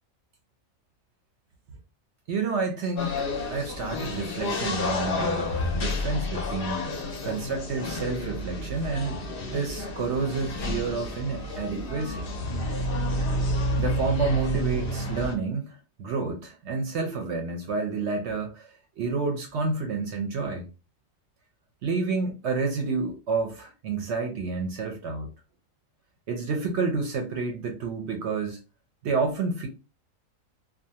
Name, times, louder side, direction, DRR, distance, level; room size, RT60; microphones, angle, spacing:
voice 1, 2.3-9.2 9.5-12.3 13.8-20.7 21.8-25.3 26.3-28.6 29.0-29.7, right 4 dB, 65° right, 0.8 m, -29 dB
sound 1, 3.0-15.4, left 1 dB, 60° left, 0.6 m, -30 dB
2.4 x 2.2 x 2.7 m
omnidirectional pair, 1.4 m